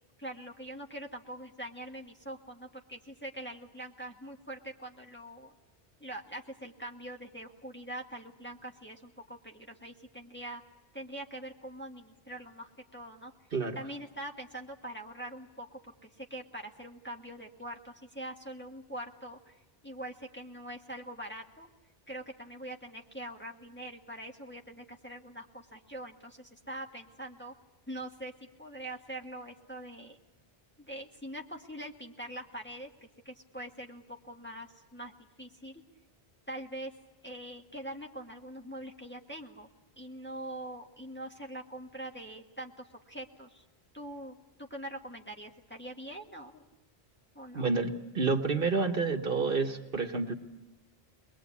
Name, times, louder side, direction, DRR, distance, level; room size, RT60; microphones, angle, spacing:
voice 1, 0.2-5.5 6.0-10.6 10.9-13.3 13.7-21.7 22.1-27.5 27.9-28.3 28.6-30.2 30.8-32.9 33.2-35.1 35.4-35.8 36.5-36.9 37.2-39.7 40.0-43.6 43.9-46.7 47.3-47.7, right 1 dB, 10° left, 0 dB, 1.5 m, -43 dB
voice 2, 47.5-50.3, right 4 dB, 60° right, 6 dB, 1.5 m, -29 dB
22.0 x 21.5 x 8.4 m, 1.0 s
omnidirectional pair, 1.0 m